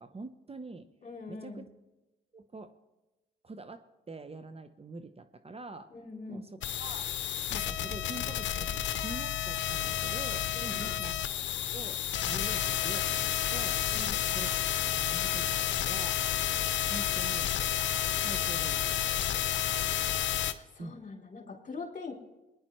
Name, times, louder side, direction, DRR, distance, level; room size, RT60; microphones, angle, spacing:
voice 1, 0.0-0.9 1.3-1.7 2.3-2.7 3.4-5.9 6.3-7.1 7.5-13.8 14.3-14.5 14.8-16.2 16.9-17.6 18.2-18.8 20.8-21.0, right 3 dB, 30° right, 9 dB, 0.9 m, -45 dB
voice 2, 1.0-1.6 5.9-6.5 10.5-11.0 13.9-14.2 20.5-22.1, left 4 dB, 40° left, 0 dB, 3.4 m, -43 dB
sound 1, 6.6-20.5, left 11 dB, 70° left, 0.7 m, -31 dB
19.5 x 10.0 x 3.2 m, 1.0 s
supercardioid pair, 55°, 20 cm